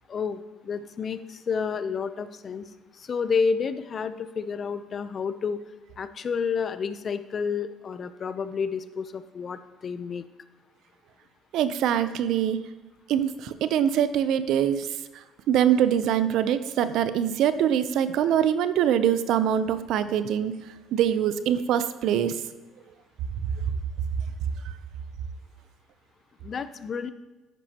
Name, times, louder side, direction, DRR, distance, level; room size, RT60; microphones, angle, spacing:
voice 1, 0.1-5.6 6.0-10.2 26.4-27.1, left 6 dB, 35° left, 12 dB, 0.5 m, -30 dB
voice 2, 11.5-12.6 13.1-14.9 15.1-20.5 20.9-22.4 24.6-24.7, right 9 dB, 70° right, 12 dB, 0.5 m, -24 dB
10.5 x 8.3 x 2.9 m, 1.2 s
cardioid pair, 120°, 0 cm